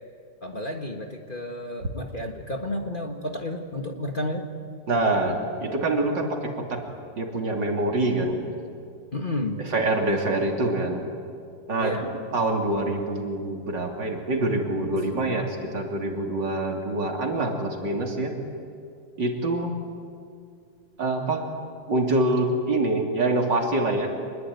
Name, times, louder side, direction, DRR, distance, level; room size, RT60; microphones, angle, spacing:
voice 1, 0.4-4.5 9.1-9.6 11.8-12.2, left 1 dB, 30° left, 3 dB, 1.6 m, -31 dB
voice 2, 4.9-6.8 7.2-8.4 9.7-11.0 11.7-11.9 12.3-18.3 19.2-19.7 21.0-21.5 21.9-24.1, right 2 dB, 65° right, 1 dB, 3.7 m, -25 dB
26.0 x 21.0 x 9.4 m, 2.3 s
omnidirectional pair, 2.1 m